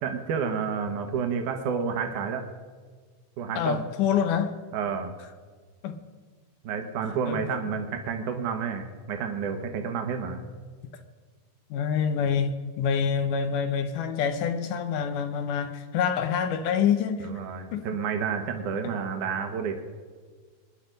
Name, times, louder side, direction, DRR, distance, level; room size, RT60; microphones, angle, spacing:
voice 1, 0.0-2.5 3.4-3.9 4.7-5.1 6.6-10.4 17.2-19.8, right 6 dB, 70° right, 2.6 m, -30 dB
voice 2, 3.6-4.5 5.8-6.0 7.3-7.4 11.7-17.3 17.7-17.9, left 7 dB, 75° left, 2.4 m, -26 dB
25.0 x 10.5 x 5.2 m
omnidirectional pair, 3.8 m